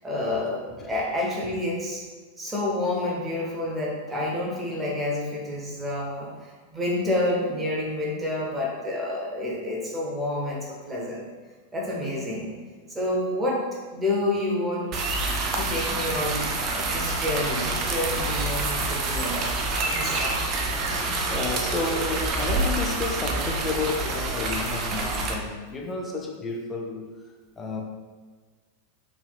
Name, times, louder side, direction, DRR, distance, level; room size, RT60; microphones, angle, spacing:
voice 1, 0.0-2.0 2.4-11.3 11.7-12.5 12.9-15.0 15.5-19.5 19.9-20.4, left 1 dB, 10° right, -4 dB, 1.0 m, -29 dB
sound 1, 14.9-25.3, right 2 dB, 35° right, 0.4 m, -27 dB
voice 2, 21.0-27.1 27.6-27.8, left 3 dB, 15° left, 1 dB, 0.6 m, -31 dB
4.4 x 3.4 x 2.3 m, 1.4 s
figure-of-eight pair, 90°, 0 cm